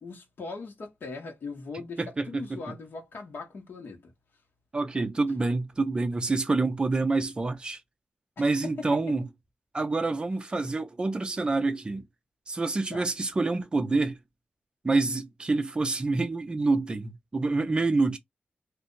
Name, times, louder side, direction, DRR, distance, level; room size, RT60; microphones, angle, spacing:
voice 1, 0.0-4.1 8.4-9.2 12.9-13.1, left 4 dB, 70° left, 1.1 m, -40 dB
voice 2, 2.0-2.6 4.7-7.8 8.4-9.3 9.7-12.0 12.5-14.2 14.8-18.2, right 3 dB, 25° right, 0.5 m, -27 dB
2.6 x 2.2 x 3.8 m
wide cardioid pair, 165°, 4 cm